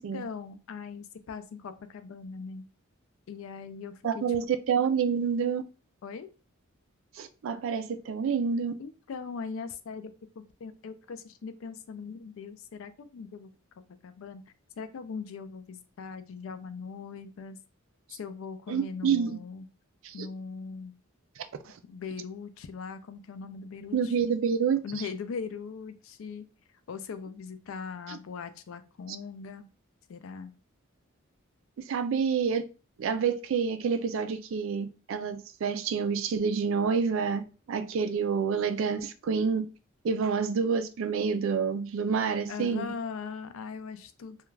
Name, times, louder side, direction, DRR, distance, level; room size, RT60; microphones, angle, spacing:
voice 1, 0.0-2.7 3.3-4.4 6.0-6.3 8.8-13.5 14.0-14.4 14.8-17.6 18.1-19.7 20.1-20.9 21.8-24.1 24.8-26.5 26.9-29.7 30.1-30.5 42.5-44.4, left 5 dB, 75° left, 0.4 m, -40 dB
voice 2, 4.0-5.6 7.2-8.7 18.7-19.3 20.0-20.3 21.7-21.8 23.9-24.8 28.1-28.2 31.9-32.6 33.0-39.7 40.0-42.9, right 6 dB, 65° right, 0.3 m, -28 dB
2.4 x 2.2 x 3.1 m
head